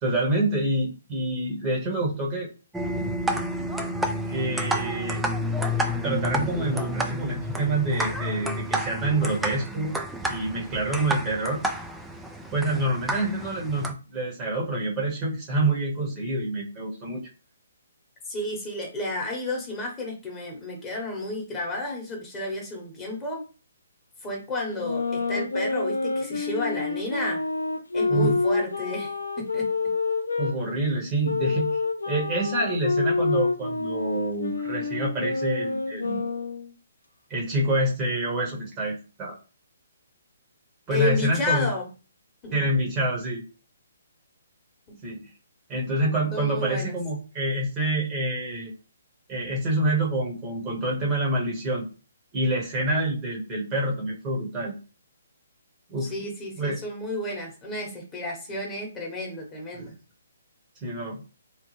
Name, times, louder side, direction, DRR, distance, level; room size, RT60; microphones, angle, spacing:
voice 1, 0.0-2.5 4.3-5.3 6.0-9.9 10.2-11.6 12.5-17.2 28.1-28.4 30.4-31.7 32.1-36.2 37.3-39.4 40.9-41.7 42.5-43.4 45.0-45.3 45.7-48.7 49.3-51.9 52.3-54.7 55.9-56.1 56.6-56.8 59.7-59.9 60.8-61.2, right 1 dB, 25° right, -2 dB, 0.9 m, -27 dB
sound 1, 2.7-13.9, equal, 5° right, 0.3 m, -30 dB
voice 2, 18.2-23.4 24.2-27.4 27.9-29.7 40.9-41.9 42.4-42.6 44.9-45.0 46.3-46.9 56.0-60.0, left 2 dB, 15° left, -1 dB, 1.0 m, -31 dB
sound 2, 24.7-30.5 31.2-36.7, left 3 dB, 80° left, 0.5 m, -27 dB
2.9 x 2.0 x 3.1 m, 0.35 s
figure-of-eight pair, 135°, 0 cm